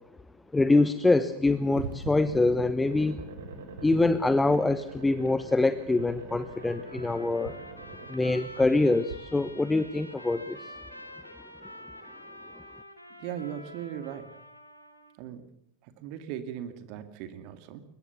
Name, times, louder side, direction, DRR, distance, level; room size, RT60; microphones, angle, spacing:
voice 1, 0.5-3.2 3.8-7.6 8.1-10.7, left 2 dB, 10° left, 12 dB, 1.0 m, -25 dB
sound 1, 1.7-9.2, right 4 dB, 65° right, 3.6 m, -42 dB
Trumpet, 6.4-15.2, equal, 90° left, 2.9 m, -47 dB
voice 2, 13.2-14.3 15.2-15.5 16.0-17.8, right 9 dB, 45° right, 10 dB, 2.1 m, -38 dB
22.0 x 21.5 x 7.0 m, 0.75 s
figure-of-eight pair, 90°, 0 cm